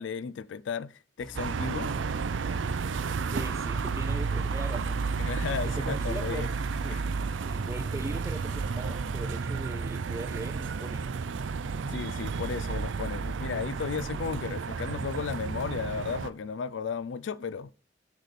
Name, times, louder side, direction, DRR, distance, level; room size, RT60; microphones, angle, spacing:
voice 1, 0.0-1.9 5.2-6.5 6.9-7.1 11.9-17.7, left 6 dB, 75° left, 0.4 m, -34 dB
sound 1, 1.2-9.1, equal, 5° left, 0.8 m, -48 dB
sound 2, 1.3-16.3, right 5 dB, 90° right, 0.5 m, -32 dB
voice 2, 3.3-5.0 5.6-6.5 6.8-7.0 7.5-11.3, right 2 dB, 15° right, 0.4 m, -40 dB
10.5 x 4.1 x 4.8 m
head